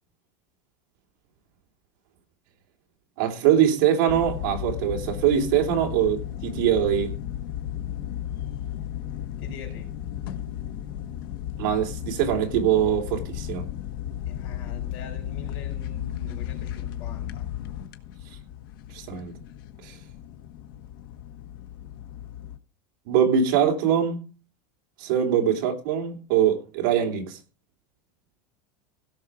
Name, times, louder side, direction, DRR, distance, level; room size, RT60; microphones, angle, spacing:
voice 1, 3.2-7.2 11.6-13.7 18.9-19.3 19.8-19.9 23.1-24.3 25.0-27.4, right 9 dB, 60° right, 3.3 m, -23 dB
sound 1, 4.1-22.6, left 11 dB, 70° left, 1.6 m, -35 dB
voice 2, 9.4-9.9 14.3-17.5, left 4 dB, 45° left, 6.0 m, -44 dB
17.0 x 6.4 x 4.9 m
supercardioid pair, 175°, 12 cm